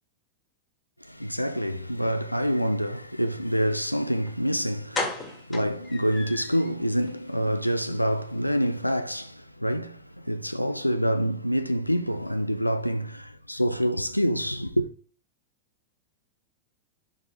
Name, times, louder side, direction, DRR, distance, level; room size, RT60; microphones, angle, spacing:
voice 1, 1.0-14.9, equal, 90° left, 0.3 m, -27 dB
sound 1, 4.3-4.4 4.9-6.7 7.1-7.2 7.5-7.7 7.9-8.0, left 3 dB, 15° left, 1.7 m, -34 dB
6.0 x 3.3 x 5.2 m
figure-of-eight pair, 90°, 0 cm